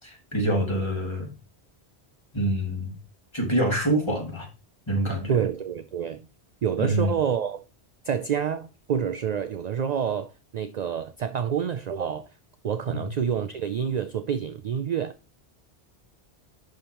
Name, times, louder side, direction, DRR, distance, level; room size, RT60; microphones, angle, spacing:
voice 1, 0.3-1.3 2.3-2.9 3.3-4.5 4.9-5.3 6.8-7.1 12.9-13.0, right 1 dB, 25° left, 2.4 m, -25 dB
voice 2, 5.3-6.3 6.6-7.6 8.0-12.3 12.6-15.1, right 8 dB, 55° right, 0.5 m, -28 dB
11.0 x 5.1 x 2.9 m
omnidirectional pair, 1.1 m